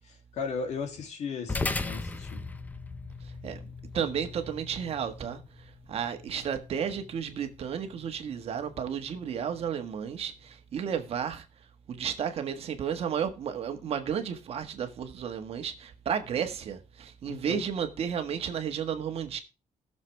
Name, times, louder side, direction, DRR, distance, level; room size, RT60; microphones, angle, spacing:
voice 1, 0.3-2.5 17.3-17.6, left 5 dB, 60° left, 2.9 m, -36 dB
sound 1, 1.5-10.1, left 3 dB, 10° left, 0.7 m, -39 dB
voice 2, 3.9-5.4 5.9-11.4 11.9-19.4, right 8 dB, 50° right, 1.5 m, -32 dB
19.0 x 6.8 x 3.4 m
cardioid pair, 180°, 13 cm